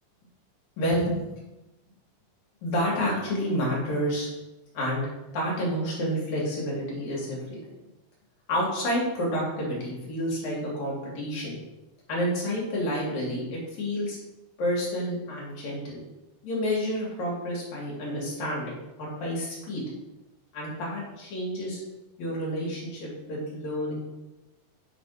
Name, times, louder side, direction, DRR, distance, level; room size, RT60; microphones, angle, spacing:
voice 1, 0.8-1.2 2.6-4.3 4.7-5.0 5.3-7.6 8.5-11.6 12.1-14.2 14.6-16.0 16.4-19.8 20.5-21.8 22.2-23.9, equal, 60° left, -4 dB, 3.7 m, -29 dB
8.1 x 5.2 x 5.3 m, 1.0 s
omnidirectional pair, 3.8 m